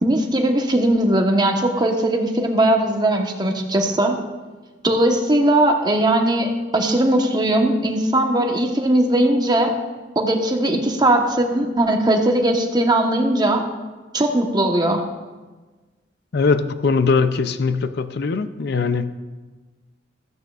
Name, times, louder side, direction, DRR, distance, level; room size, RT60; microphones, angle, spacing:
voice 1, 0.0-4.2 4.8-9.7 10.1-13.7 14.1-15.0, right 1 dB, 25° right, 1.1 m, -19 dB
voice 2, 16.3-19.1, left 4 dB, 65° left, 0.5 m, -21 dB
15.0 x 13.5 x 2.4 m
head